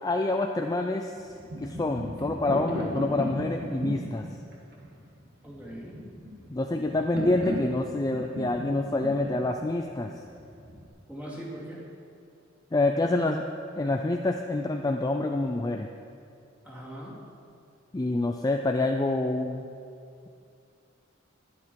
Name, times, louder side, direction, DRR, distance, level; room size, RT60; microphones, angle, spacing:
voice 1, 0.0-1.3 1.6-4.3 6.5-10.1 12.7-13.4 13.8-15.9 17.9-19.7, left 2 dB, 20° left, 3 dB, 0.4 m, -27 dB
sound 1, 1.2-10.9, equal, 55° right, 1.9 m, -36 dB
voice 2, 5.4-6.0 11.1-11.8 16.6-17.1, right 1 dB, 10° right, -7 dB, 2.6 m, -40 dB
12.0 x 11.0 x 4.7 m, 2.5 s
head